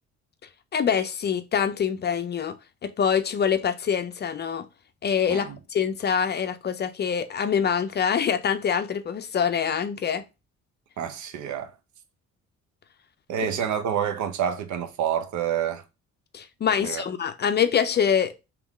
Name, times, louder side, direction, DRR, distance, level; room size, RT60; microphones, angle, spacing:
voice 1, 0.7-2.5 2.8-4.7 5.0-10.2 16.3-18.3, left 7 dB, 35° left, 0.4 m, -25 dB
voice 2, 11.0-11.7 13.3-15.8 16.8-17.0, right 9 dB, 75° right, 0.7 m, -28 dB
3.6 x 3.1 x 3.5 m
cardioid pair, 120°, 29 cm